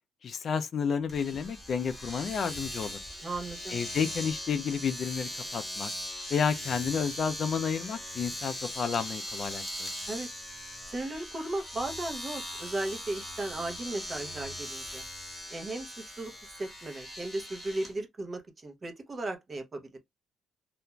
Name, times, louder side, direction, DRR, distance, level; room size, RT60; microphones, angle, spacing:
voice 1, 0.2-3.0 3.7-5.9 6.3-9.9, left 6 dB, 50° left, 0.3 m, -31 dB
Domestic sounds home sounds, 1.1-17.9, equal, 5° left, 1.0 m, -40 dB
voice 2, 3.2-3.8 10.1-10.3 10.9-15.0 15.5-20.0, right 2 dB, 30° right, 0.7 m, -36 dB
2.4 x 2.2 x 2.9 m
cardioid pair, 120°, 0 cm